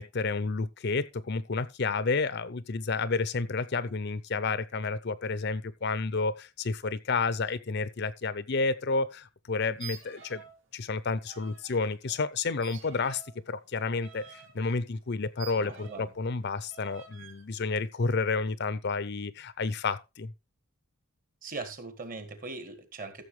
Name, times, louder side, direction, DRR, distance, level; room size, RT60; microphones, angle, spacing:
voice 1, 0.0-10.4 10.7-20.3, left 4 dB, 50° left, 0.6 m, -30 dB
sound 1, 9.7-10.6 10.9-11.9 12.6-16.2 16.7-17.4, right 8 dB, 60° right, 2.6 m, -49 dB
voice 2, 15.6-16.1 21.4-23.2, right 3 dB, 40° right, 1.8 m, -40 dB
14.0 x 6.9 x 3.2 m
head